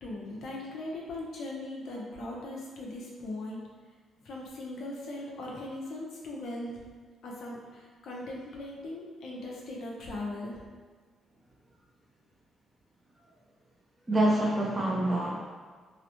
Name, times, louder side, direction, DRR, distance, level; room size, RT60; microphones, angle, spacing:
voice 1, 0.0-3.6 4.2-6.8 7.2-10.6, left 1 dB, 70° left, -3 dB, 0.6 m, -39 dB
voice 2, 14.1-15.5, right 1 dB, 20° right, -3 dB, 0.6 m, -26 dB
2.9 x 2.0 x 2.9 m, 1.5 s
cardioid pair, 90°, 0 cm